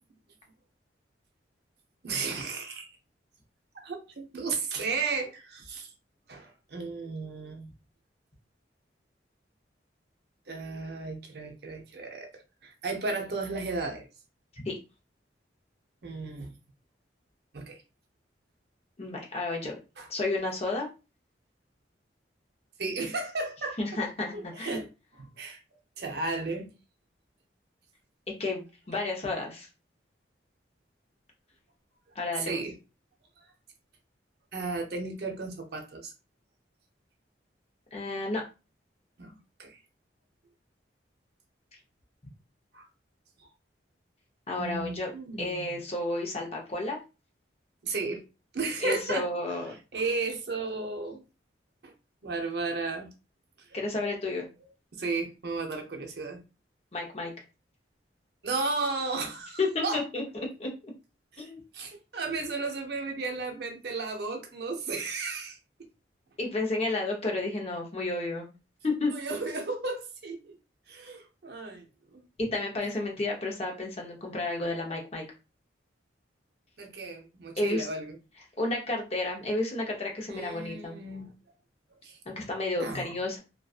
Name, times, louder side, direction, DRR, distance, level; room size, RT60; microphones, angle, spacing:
voice 1, 2.0-2.9 3.7-5.9 6.3-7.7 10.5-14.1 16.0-16.6 17.5-17.8 20.0-20.1 22.8-24.0 24.3-24.9 25.1-25.6 26.0-26.7 32.4-32.7 34.5-36.1 39.2-39.3 39.6-39.8 42.7-42.9 43.4-43.5 44.6-45.8 47.8-48.2 48.5-49.3 49.9-51.2 51.8-51.9 52.2-53.1 54.9-56.4 58.4-60.0 61.3-61.5 61.7-65.6 69.1-70.6 70.9-72.2 76.8-78.2 80.3-81.3 82.0-82.2 82.8-83.1, right 3 dB, 60° right, 0.6 m, -34 dB
voice 2, 19.0-19.7 20.1-20.9 23.8-24.8 28.4-29.7 32.1-32.6 37.9-38.4 44.5-45.1 45.4-47.0 48.8-49.8 53.7-54.5 56.9-57.3 59.6-60.7 61.4-61.6 66.4-68.5 68.8-69.1 72.4-75.2 77.6-77.9 78.6-81.0 82.3-83.4, left 2 dB, 35° left, 0.6 m, -31 dB
2.5 x 2.3 x 2.4 m
head